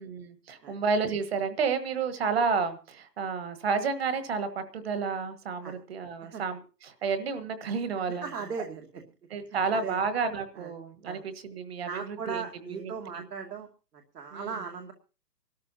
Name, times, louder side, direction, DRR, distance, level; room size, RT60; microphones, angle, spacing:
voice 1, 0.0-8.2 9.3-12.4 12.8-12.9 14.3-14.5, right 5 dB, 40° right, 10 dB, 1.5 m, -31 dB
voice 2, 8.2-9.0 9.5-10.0 10.5-10.7 11.0-11.2 11.8-13.7 14.1-14.9, right 5 dB, 75° right, 2 dB, 2.6 m, -38 dB
26.0 x 13.0 x 2.8 m, 0.35 s
hypercardioid pair, 175°, 49 cm